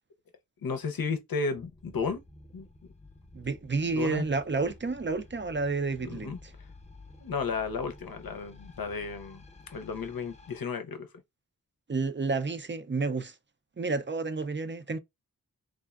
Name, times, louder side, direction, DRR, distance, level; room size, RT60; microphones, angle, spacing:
voice 1, 0.6-2.2 2.5-2.7 3.9-4.2 6.1-6.4 7.2-9.4 9.7-11.1, left 5 dB, 80° left, 0.6 m, -33 dB
sound 1, 1.5-10.6, left 2 dB, 20° left, 0.7 m, -52 dB
voice 2, 3.3-6.5 11.9-13.4 13.8-15.0, right 3 dB, 35° right, 0.4 m, -30 dB
3.4 x 2.1 x 2.3 m
wide cardioid pair, 50°, 35 cm